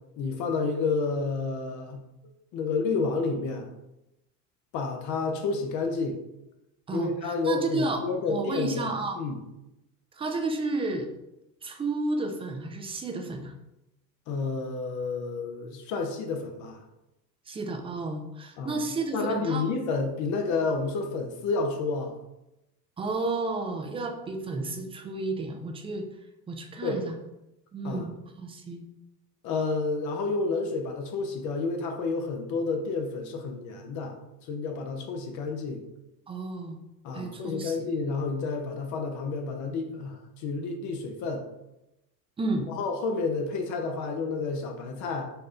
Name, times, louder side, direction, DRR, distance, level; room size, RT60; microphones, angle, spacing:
voice 1, 0.2-2.0 2.5-3.7 4.7-6.2 6.9-8.9 9.2-9.4 14.3-16.8 18.6-18.8 19.1-22.2 26.8-27.0 27.8-28.1 29.4-34.2 34.5-35.8 37.0-41.4 42.7-45.2, left 4 dB, 40° left, 4 dB, 0.7 m, -30 dB
voice 2, 6.9-8.0 8.3-9.2 10.1-11.1 11.6-13.5 17.5-19.7 23.0-26.1 26.5-27.2 27.7-28.8 36.3-36.8 37.1-37.8 42.4-42.7, right 2 dB, 10° right, 4 dB, 0.5 m, -32 dB
4.3 x 3.7 x 3.3 m, 0.92 s
figure-of-eight pair, 75°, 50 cm